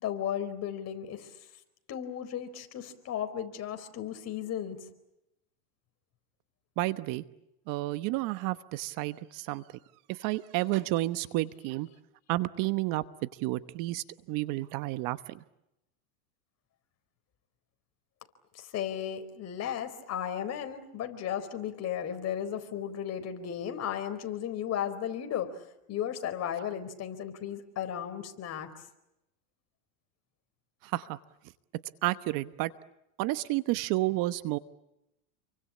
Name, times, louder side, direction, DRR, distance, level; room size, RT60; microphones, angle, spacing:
voice 1, 0.0-1.3 1.9-4.8 18.5-25.5 25.9-28.7, left 9 dB, 35° left, 8 dB, 4.3 m, -35 dB
voice 2, 6.8-7.2 7.7-9.6 10.1-11.9 12.3-15.4 30.8-31.2 32.0-32.7 33.2-34.6, right 18 dB, 50° right, 14 dB, 1.2 m, -31 dB
29.0 x 24.0 x 8.6 m, 0.87 s
supercardioid pair, 120°, 42 cm